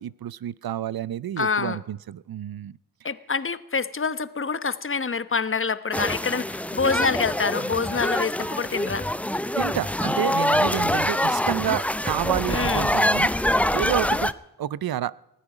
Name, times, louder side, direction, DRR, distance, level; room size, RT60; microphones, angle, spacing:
voice 1, 0.0-2.8 9.6-13.3 13.7-15.2, right 11 dB, 70° right, 22 dB, 0.6 m, -29 dB
voice 2, 1.4-1.8 3.0-9.1 12.5-12.9, left 5 dB, 35° left, 15 dB, 1.0 m, -26 dB
sound 1, 5.9-14.3, left 1 dB, 5° left, 0.6 m, -25 dB
20.0 x 14.0 x 5.0 m, 0.88 s
cardioid pair, 65°, 38 cm